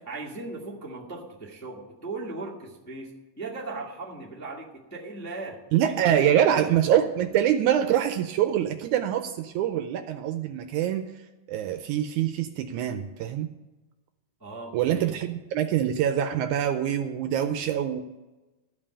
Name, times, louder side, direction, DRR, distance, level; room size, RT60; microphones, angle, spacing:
voice 1, 0.0-6.7 14.4-15.1, right 3 dB, 10° left, -5 dB, 1.0 m, -38 dB
voice 2, 5.7-11.0 11.5-13.5 14.7-18.0, right 10 dB, 80° right, 8 dB, 1.9 m, -25 dB
13.5 x 5.4 x 8.6 m, 1.1 s
omnidirectional pair, 3.8 m